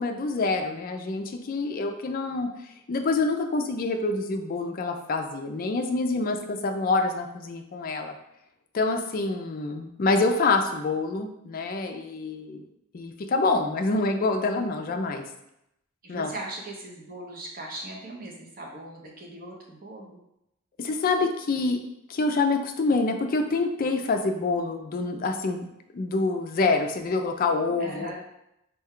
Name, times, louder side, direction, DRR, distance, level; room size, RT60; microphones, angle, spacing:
voice 1, 0.0-2.5 2.9-8.1 8.7-12.6 12.9-15.2 16.1-16.3 20.8-21.8 22.1-25.7 25.9-28.1, left 3 dB, 40° left, 4 dB, 0.3 m, -26 dB
voice 2, 16.0-20.2 27.8-28.1, right 2 dB, 40° right, -1 dB, 0.7 m, -39 dB
4.4 x 2.2 x 3.6 m, 0.84 s
head